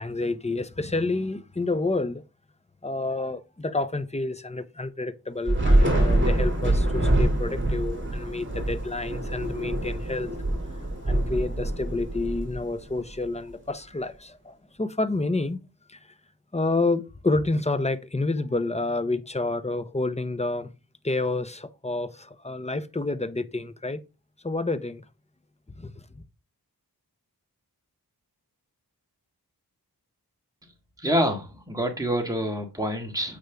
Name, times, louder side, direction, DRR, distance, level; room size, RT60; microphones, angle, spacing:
voice 1, 0.0-2.2 2.8-10.3 11.0-15.6 15.9-16.1 16.5-20.7 21.0-24.0 24.4-25.0 25.8-26.2, left 2 dB, 15° left, 0.7 m, -29 dB
Thunder / Rain, 5.4-13.0, right 1 dB, 30° right, 2.6 m, -25 dB
voice 2, 31.0-33.4, equal, 10° right, 1.7 m, -27 dB
8.0 x 5.2 x 3.5 m
wide cardioid pair, 50°, 40 cm